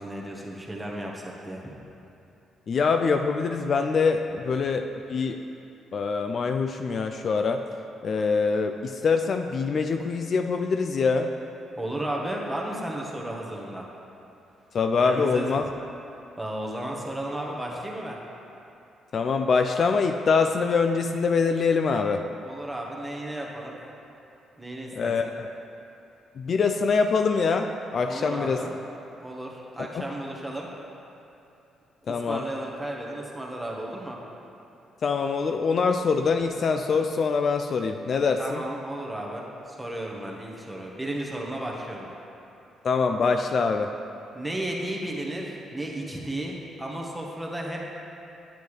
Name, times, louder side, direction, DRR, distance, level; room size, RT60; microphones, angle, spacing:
voice 1, 0.0-1.7 11.8-13.8 15.0-15.5 16.4-18.2 22.4-23.8 24.6-25.3 28.0-28.7 29.2-30.7 32.3-34.2 38.4-42.1 44.3-47.8, right 1 dB, 5° right, -2 dB, 1.2 m, -34 dB
voice 2, 2.7-5.4 5.9-7.6 8.0-11.3 14.7-15.7 19.1-22.2 25.0-25.5 26.4-28.6 29.9-30.0 32.1-32.4 35.0-38.6 42.8-43.9, left 5 dB, 50° left, 5 dB, 0.3 m, -24 dB
8.7 x 7.9 x 3.2 m, 2.8 s
cardioid pair, 90°, 0 cm